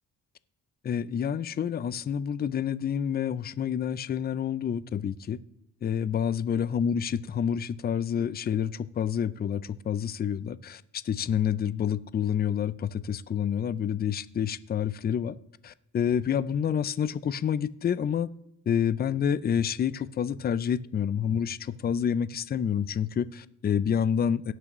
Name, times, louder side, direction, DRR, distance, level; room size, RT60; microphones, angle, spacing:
voice 1, 0.8-5.4 5.8-15.4 15.6-18.3 18.7-24.5, left 8 dB, 30° left, 0.4 m, -28 dB
18.0 x 6.1 x 3.0 m
cardioid pair, 105°, 36 cm